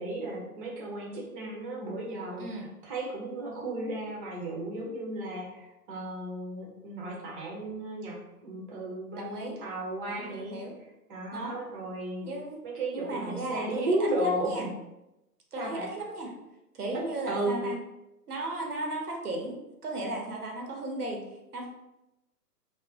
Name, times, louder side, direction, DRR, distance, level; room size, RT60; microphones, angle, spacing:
voice 1, 0.0-10.6 11.1-12.3 12.6-14.7 15.6-15.9 16.9-17.7, right 1 dB, 35° right, -3 dB, 0.7 m, -34 dB
voice 2, 2.4-2.7 9.1-9.6 10.1-10.8 11.3-11.6 12.2-12.6 12.9-14.7 15.5-16.3 16.7-17.8 18.3-21.7, right 2 dB, 65° right, 1 dB, 0.8 m, -35 dB
2.4 x 2.1 x 3.6 m, 0.94 s
figure-of-eight pair, 120°, 48 cm